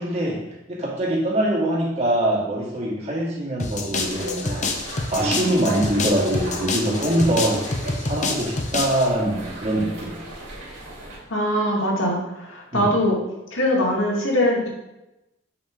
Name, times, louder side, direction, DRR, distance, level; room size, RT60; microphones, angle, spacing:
voice 1, 0.0-7.6 8.0-10.2 12.7-12.9, right 1 dB, 35° right, -5 dB, 2.1 m, -24 dB
sound 1, 3.6-9.1, left 3 dB, 40° left, 0.8 m, -28 dB
sound 2, 4.0-11.2, right 1 dB, 70° right, 2.4 m, -35 dB
voice 2, 11.3-13.2 13.5-14.7, left 1 dB, 80° left, -2 dB, 2.1 m, -22 dB
7.8 x 5.3 x 3.7 m, 0.94 s
head